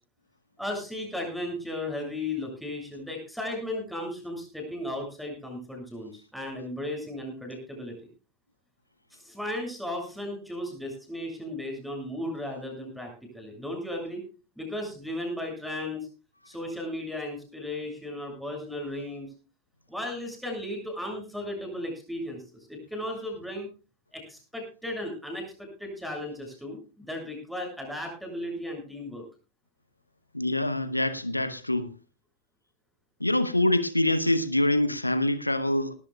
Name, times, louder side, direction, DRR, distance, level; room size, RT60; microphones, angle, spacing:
voice 1, 0.6-8.1 9.1-14.2 14.6-16.1 16.5-19.3 19.9-22.4 22.7-23.7 24.1-29.2, left 1 dB, ahead, 7.1 m, -35 dB
voice 2, 30.3-31.9 33.2-35.9, left 1 dB, 85° left, 1.0 m, -25 dB
19.0 x 16.0 x 2.3 m
figure-of-eight pair, 90°, 0 cm